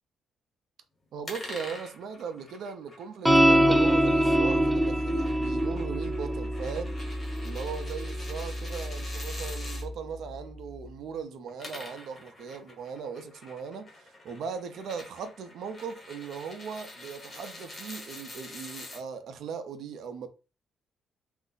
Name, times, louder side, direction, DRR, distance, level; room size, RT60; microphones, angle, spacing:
voice 1, 1.1-6.9 7.4-20.3, right 6 dB, 75° right, 0.5 m, -38 dB
sound 1, 1.2-9.8 11.4-19.0, left 1 dB, 35° left, 1.3 m, -46 dB
sound 2, 3.2-9.9, equal, 5° right, 0.5 m, -25 dB
2.5 x 2.0 x 3.8 m
cardioid pair, 90°, 0 cm